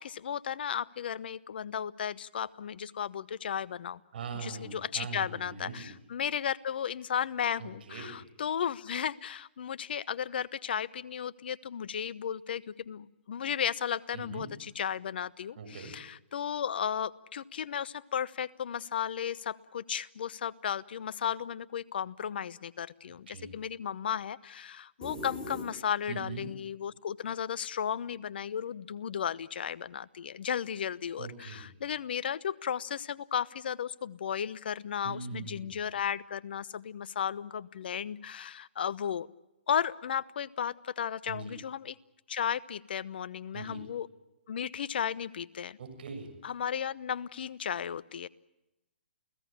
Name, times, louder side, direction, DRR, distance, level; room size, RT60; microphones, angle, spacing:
voice 1, 0.0-4.0 4.3-39.3 39.7-41.9 42.3-44.1 44.5-45.8 46.4-48.3, left 8 dB, 60° left, 18 dB, 1.0 m, -34 dB
voice 2, 4.1-5.9 7.6-8.2 14.1-14.5 15.5-16.0 23.0-23.5 26.1-26.5 31.2-31.7 35.0-35.7 41.2-41.5 43.5-43.9 45.8-46.3, right 5 dB, 60° right, 8 dB, 6.8 m, -42 dB
sound 1, 25.0-26.2, left 1 dB, 10° left, 5.2 m, -42 dB
29.0 x 17.5 x 8.7 m, 0.96 s
hypercardioid pair, 140°, 6 cm